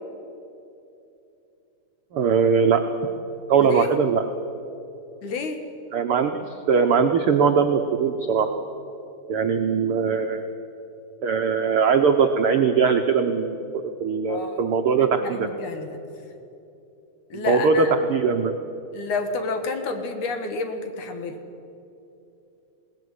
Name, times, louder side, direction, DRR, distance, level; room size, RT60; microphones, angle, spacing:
voice 1, 2.1-2.9 3.5-4.2 5.9-8.5 9.3-10.5 11.2-15.5 17.3-18.5, right 6 dB, 80° right, 5 dB, 1.2 m, -21 dB
voice 2, 3.6-3.9 5.2-5.6 14.3-14.7 15.2-16.0 17.3-17.9 18.9-21.4, left 3 dB, 65° left, 6 dB, 3.0 m, -30 dB
20.5 x 18.5 x 9.7 m, 2.8 s
omnidirectional pair, 3.8 m